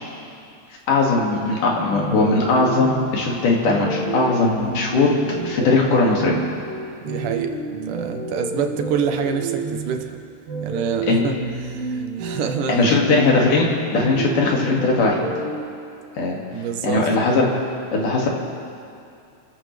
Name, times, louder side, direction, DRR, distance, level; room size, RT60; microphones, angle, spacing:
voice 1, 0.9-5.1 5.4-6.4 11.1-11.3 12.7-13.7 13.9-15.2 16.2-16.4 16.8-17.5 17.9-18.3, left 3 dB, 70° left, -2 dB, 3.7 m, -19 dB
sound 1, 1.9-15.6, right 3 dB, 50° right, 2.6 m, -30 dB
voice 2, 7.0-10.2 10.6-11.4 11.6-13.3 14.7-14.8 16.5-17.1, right 7 dB, 75° right, 5 dB, 2.4 m, -27 dB
30.0 x 14.0 x 3.3 m, 2.5 s
omnidirectional pair, 3.8 m